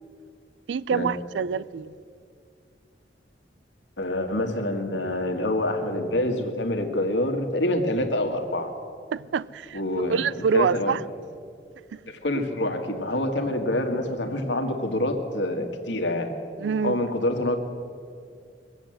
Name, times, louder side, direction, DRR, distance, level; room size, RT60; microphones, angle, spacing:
voice 1, 0.7-1.9 9.1-9.8 10.1-11.0 11.9-12.0 12.3-12.4 16.6-17.0, right 6 dB, 80° right, 0.4 m, -26 dB
voice 2, 4.0-8.7 9.7-10.2 10.5-11.0 12.1-16.3 16.8-17.6, left 1 dB, 80° left, 1.7 m, -26 dB
22.0 x 8.1 x 7.7 m
head